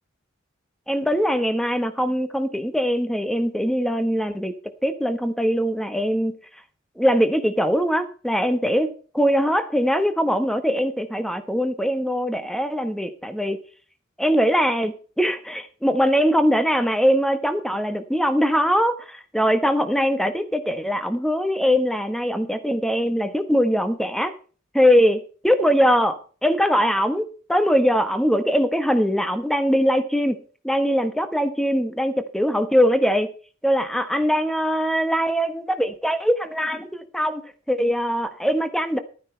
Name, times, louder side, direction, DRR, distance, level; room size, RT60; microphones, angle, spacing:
voice 1, 0.9-4.5 4.8-6.3 7.0-13.6 14.2-24.3 24.7-30.4 30.6-33.3 33.6-37.4 37.7-39.0, equal, ahead, 10 dB, 1.0 m, -21 dB
12.0 x 9.8 x 4.4 m, 0.39 s
head